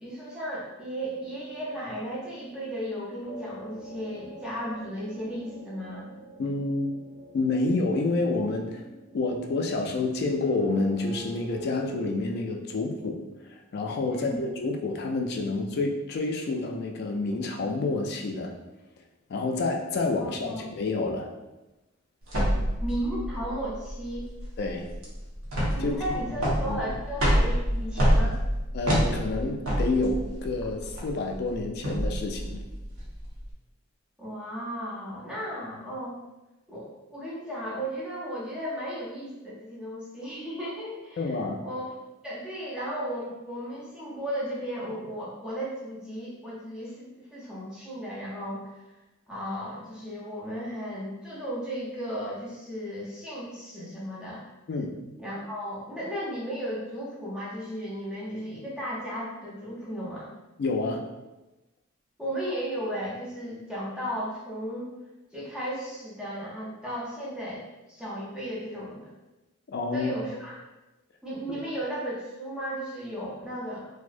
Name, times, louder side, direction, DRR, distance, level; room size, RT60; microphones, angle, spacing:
voice 1, 0.0-6.1 14.1-14.4 20.2-20.6 22.8-24.3 25.7-28.4 34.2-36.2 36.7-41.3 41.6-41.9 42.2-48.7 49.3-54.4 55.2-60.3 62.2-64.9 65.3-69.1 69.9-70.6 71.2-73.9, equal, 5° right, -7 dB, 0.6 m, -35 dB
sound 1, 1.0-12.1, right 1 dB, 50° right, 0.9 m, -45 dB
voice 2, 6.4-6.9 7.3-8.8 9.1-13.2 13.7-18.5 19.3-21.3 24.6-24.9 25.8-26.2 26.4-26.8 28.7-32.6 41.2-41.6 54.7-54.9 60.6-61.0 69.7-70.1 71.5-71.6, left 3 dB, 50° left, 3 dB, 0.3 m, -28 dB
sound 2, 22.3-33.5, equal, 80° right, 0.8 m, -27 dB
2.6 x 2.0 x 2.4 m, 1.0 s
head